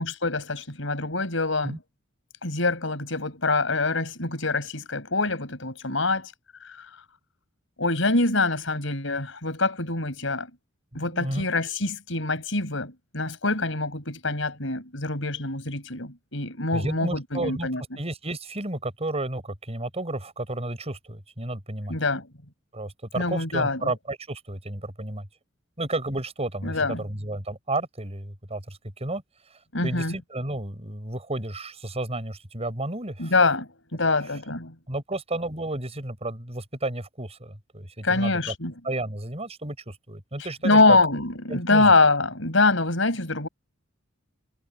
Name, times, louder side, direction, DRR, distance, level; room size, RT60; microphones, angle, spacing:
voice 1, 0.0-1.8 2.4-6.3 6.6-6.8 7.8-10.5 10.9-17.8 21.9-22.3 23.1-23.9 26.6-27.0 29.7-30.1 33.2-34.7 38.0-38.7 40.6-43.5, left 3 dB, 70° left, 6.6 m, -24 dB
voice 2, 10.9-11.5 16.7-21.9 22.7-25.3 25.8-29.2 29.5-33.3 34.3-34.4 34.9-38.5 38.8-41.0 41.5-41.9, right 2 dB, 30° right, 5.9 m, -32 dB
head